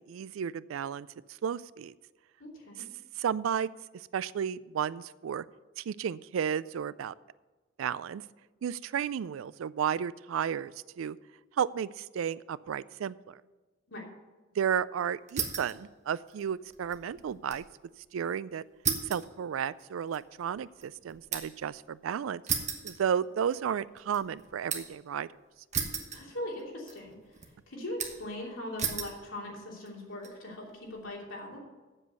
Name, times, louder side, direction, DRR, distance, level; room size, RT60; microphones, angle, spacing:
voice 1, 0.1-1.1 1.4-1.9 3.2-3.7 4.1-5.4 5.8-7.1 7.8-8.2 8.6-11.2 11.6-13.4 14.6-17.6 18.1-18.6 19.1-22.4 22.8-25.3, right 8 dB, 80° right, 19 dB, 0.3 m, -33 dB
voice 2, 2.4-2.9 13.9-14.0 26.1-27.2 27.7-31.6, left 1 dB, 80° left, -3 dB, 3.0 m, -40 dB
sound 1, 15.3-15.8 16.2-17.7 18.0-18.1 18.8-21.7 22.5-23.6 24.0-25.0 25.7-26.6 26.9-27.5 28.0-28.4 28.8-29.2 29.9-30.3, right 7 dB, 35° right, 1.2 m, -35 dB
8.1 x 7.7 x 6.8 m, 1.2 s
head